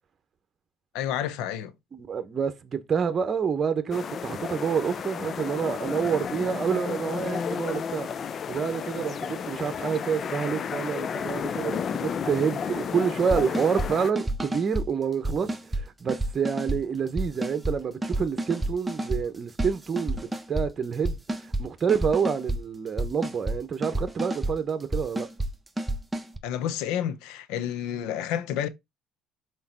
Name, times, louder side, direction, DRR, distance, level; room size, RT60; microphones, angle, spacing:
voice 1, 0.9-1.7 26.4-28.7, left 10 dB, 80° left, 0.7 m, -30 dB
voice 2, 1.9-25.3, right 6 dB, 40° right, 1.0 m, -28 dB
sound 1, 3.9-14.1, left 7 dB, 45° left, 0.5 m, -32 dB
sound 2, 13.3-13.9 14.1-14.8 15.2-15.8 16.1-16.8 17.2-17.7 18.0-19.2 19.6-20.7 21.0-21.6 21.9-22.6 23.0-23.6 23.8-24.5 24.9-25.5 25.8-26.4, right 1 dB, 10° right, 1.2 m, -29 dB
5.7 x 4.7 x 4.2 m
supercardioid pair, 95°, 0 cm